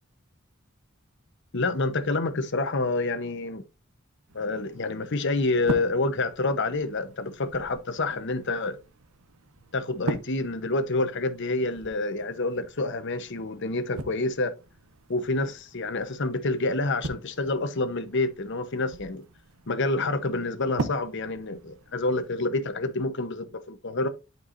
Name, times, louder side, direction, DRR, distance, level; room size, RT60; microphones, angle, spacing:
voice 1, 1.5-3.6 4.3-8.8 9.7-14.5 15.1-19.2 19.7-24.1, left 2 dB, 55° left, 0.9 m, -28 dB
sound 1, 4.3-22.3, right 2 dB, 85° right, 0.8 m, -41 dB
11.5 x 4.7 x 2.6 m
head